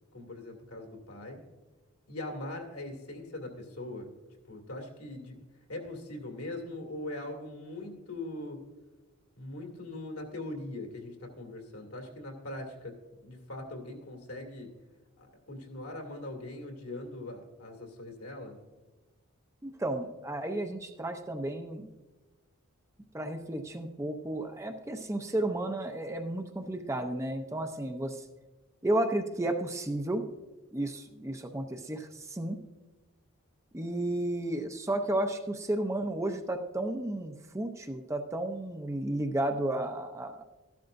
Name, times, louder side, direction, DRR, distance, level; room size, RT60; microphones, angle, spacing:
voice 1, 0.1-1.4 2.1-4.1 4.5-5.4 5.7-8.6 9.4-13.0 13.2-14.7 15.2-18.6, left 1 dB, 75° left, 2 dB, 2.3 m, -41 dB
voice 2, 19.6-21.9 23.1-28.2 28.8-30.2 30.7-32.6 33.7-40.4, right 1 dB, 15° right, 5 dB, 0.6 m, -33 dB
14.0 x 12.0 x 2.6 m, 1.2 s
head